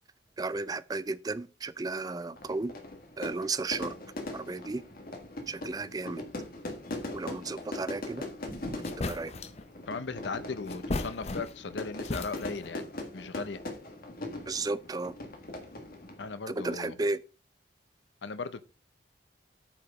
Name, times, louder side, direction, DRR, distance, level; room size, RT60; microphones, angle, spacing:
voice 1, 0.4-2.7 3.2-3.9 4.3-4.8 5.5-6.2 7.1-8.3 9.0-9.3 14.5-15.2 16.5-17.2, right 3 dB, 20° right, 0.4 m, -34 dB
Fire / Fireworks, 2.4-16.4, left 1 dB, 50° left, 1.6 m, -41 dB
sound 1, 8.4-8.5 8.8-9.7 10.7-11.7 12.0-12.7, left 2 dB, 35° left, 0.6 m, -35 dB
voice 2, 9.9-12.9 13.1-13.6 16.2-17.0 18.2-18.6, left 4 dB, 75° left, 0.7 m, -37 dB
8.8 x 4.8 x 5.3 m
head